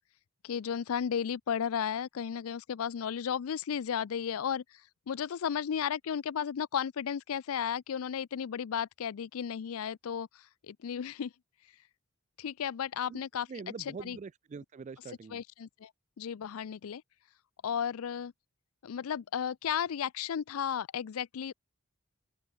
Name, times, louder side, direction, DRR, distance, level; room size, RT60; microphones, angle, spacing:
voice 1, 0.4-4.6 5.1-10.3 10.7-11.3 12.4-13.5 14.0-14.2 15.3-15.9 16.2-17.0 17.6-18.3 18.8-21.5, left 8 dB, 80° left, 0.4 m, -34 dB
voice 2, 13.5-15.4, right 5 dB, 35° right, 0.3 m, -44 dB
open air
head